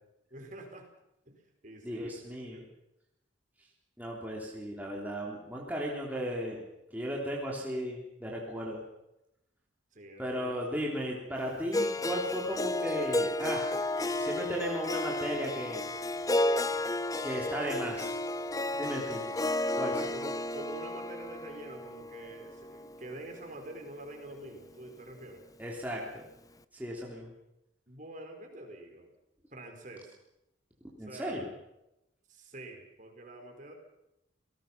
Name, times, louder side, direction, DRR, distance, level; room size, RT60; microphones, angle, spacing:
voice 1, 0.3-0.9 1.2-2.2 2.5-2.7 9.9-10.5 11.0-11.6 20.0-25.4 27.9-29.1 29.5-30.2 31.0-31.5 32.3-33.7, right 1 dB, 40° right, 3 dB, 4.9 m, -46 dB
voice 2, 1.8-2.6 4.0-6.6 6.9-8.8 10.2-13.7 14.1-15.8 17.2-18.2 18.7-19.2 19.8-20.0 25.6-26.2 26.7-27.3 30.8-31.5, equal, 10° right, -3 dB, 3.4 m, -35 dB
Harp, 11.7-23.9, left 1 dB, 20° left, 0.7 m, -33 dB
29.0 x 18.5 x 6.0 m, 0.86 s
head